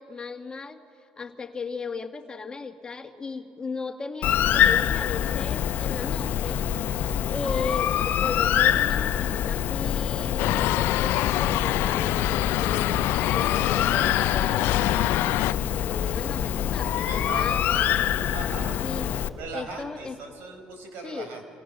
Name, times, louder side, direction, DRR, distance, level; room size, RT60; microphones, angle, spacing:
voice 1, 0.0-6.6 7.3-18.0 18.8-20.2 21.0-21.3, left 4 dB, 20° left, 5 dB, 1.9 m, -36 dB
Bird, 4.2-19.3, left 10 dB, 55° left, 1.0 m, -25 dB
sound 1, 10.4-15.5, left 16 dB, 75° left, 0.5 m, -26 dB
voice 2, 16.9-17.6 18.3-18.8 19.4-21.4, right 4 dB, 70° right, 5 dB, 5.2 m, -39 dB
29.0 x 25.5 x 6.6 m, 2.7 s
cardioid pair, 105°, 4 cm